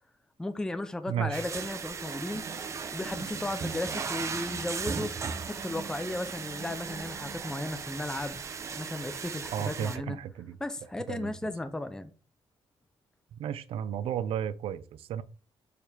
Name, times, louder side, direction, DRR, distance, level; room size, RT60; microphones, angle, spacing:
voice 1, 0.4-2.4 2.9-5.1 5.5-8.4 8.7-10.2 10.6-12.1, left 2 dB, 5° left, 0.5 m, -35 dB
voice 2, 1.1-1.4 9.5-10.6 11.1-11.5 13.3-15.2, right 9 dB, 85° right, 0.6 m, -33 dB
sound 1, 1.3-10.0, right 5 dB, 30° right, 0.6 m, -37 dB
6.6 x 4.5 x 3.5 m
cardioid pair, 170°, 9 cm